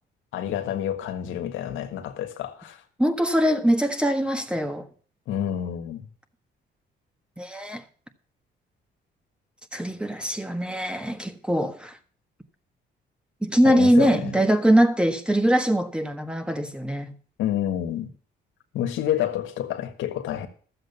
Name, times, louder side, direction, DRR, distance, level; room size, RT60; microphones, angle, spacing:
voice 1, 0.3-2.8 5.3-6.0 13.6-14.3 17.4-18.1 18.7-20.5, left 10 dB, 90° left, 1.6 m, -28 dB
voice 2, 3.0-4.9 7.4-7.8 9.7-12.0 13.4-17.1, right 1 dB, 5° right, 1.4 m, -22 dB
12.5 x 7.8 x 6.9 m
cardioid pair, 90°, 20 cm